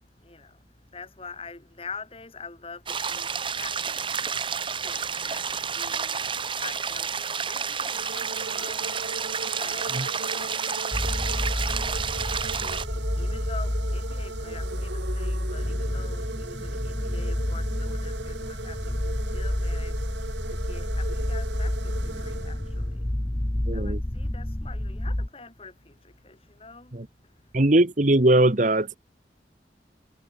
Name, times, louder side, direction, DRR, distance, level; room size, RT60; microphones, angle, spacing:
voice 1, 0.0-0.6 0.9-4.4 4.7-11.1 12.5-27.0 27.2-27.5, left 4 dB, 30° left, 3.1 m, -46 dB
sound 1, 2.9-12.9, right 6 dB, 30° right, 1.6 m, -30 dB
sound 2, 7.9-23.1, right 3 dB, 80° right, 1.4 m, -39 dB
sound 3, 10.9-25.3, left 1 dB, 10° left, 0.5 m, -29 dB
voice 2, 23.7-24.0 26.9-27.1 27.5-29.0, right 1 dB, 45° right, 1.2 m, -20 dB
head